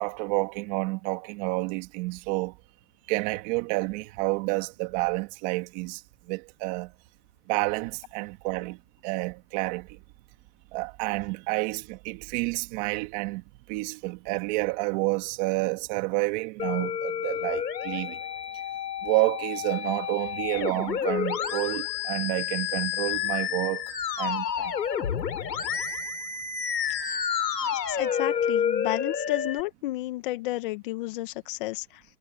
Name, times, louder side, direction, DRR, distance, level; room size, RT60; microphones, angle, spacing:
voice 1, 0.0-2.6 3.1-6.9 7.5-10.0 10.7-18.2 19.0-24.7, right 24 dB, 25° right, 2.3 m, -29 dB
Musical instrument, 16.6-29.6, left 8 dB, 85° left, 6.9 m, -30 dB
voice 2, 27.6-32.0, left 17 dB, 30° left, 1.9 m, -32 dB
hypercardioid pair, 160°, 49 cm